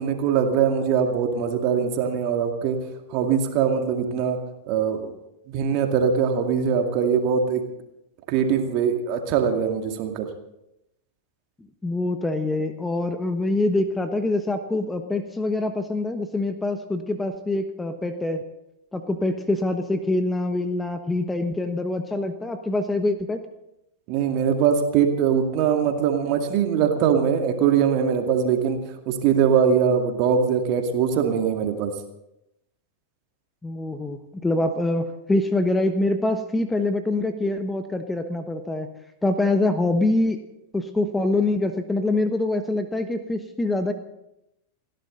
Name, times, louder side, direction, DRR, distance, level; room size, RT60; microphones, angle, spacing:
voice 1, 0.0-2.8 3.1-4.4 4.7-5.1 5.5-7.6 8.3-10.3 24.1-28.8 29.1-31.9, right 7 dB, 40° right, 4 dB, 2.3 m, -22 dB
voice 2, 11.8-18.4 18.9-23.4 33.6-38.9 39.2-40.4 40.7-43.9, left 2 dB, 10° left, 8 dB, 1.2 m, -25 dB
29.5 x 11.5 x 3.9 m, 0.86 s
figure-of-eight pair, 90°, 0 cm